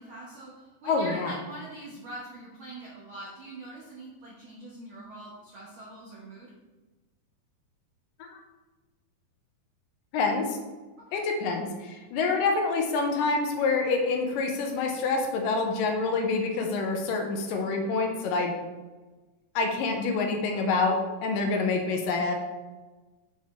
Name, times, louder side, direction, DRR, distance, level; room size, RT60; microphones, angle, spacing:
voice 1, 0.0-6.5 11.1-11.2, right 1 dB, 70° right, -5 dB, 1.2 m, -43 dB
voice 2, 0.8-1.4 10.1-10.6 11.1-18.5 19.6-22.4, left 3 dB, 80° left, 3 dB, 2.3 m, -27 dB
7.6 x 4.4 x 4.4 m, 1.2 s
omnidirectional pair, 4.1 m